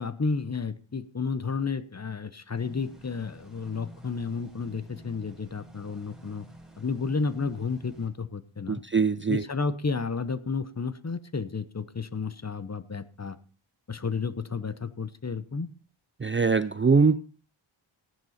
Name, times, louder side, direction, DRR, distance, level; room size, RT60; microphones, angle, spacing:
voice 1, 0.0-6.5 6.8-8.8 9.3-13.4 13.9-15.7, left 4 dB, 30° left, 14 dB, 1.0 m, -32 dB
sound 1, 2.6-8.1, right 1 dB, ahead, 5.9 m, -50 dB
voice 2, 8.7-9.4 16.2-17.2, right 5 dB, 25° right, 13 dB, 0.5 m, -22 dB
14.5 x 10.5 x 4.3 m, 0.37 s
wide cardioid pair, 70°, 49 cm